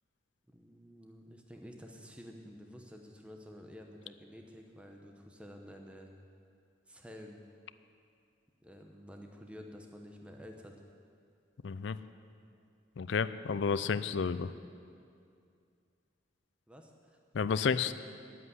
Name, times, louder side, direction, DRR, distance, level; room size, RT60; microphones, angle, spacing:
voice 1, 0.5-6.1 6.9-7.4 8.6-10.8 16.7-17.2, equal, 5° right, 2 dB, 0.9 m, -50 dB
voice 2, 11.6-12.0 13.0-14.5 17.3-17.9, left 5 dB, 75° left, 14 dB, 0.4 m, -31 dB
9.6 x 8.3 x 9.6 m, 2.4 s
head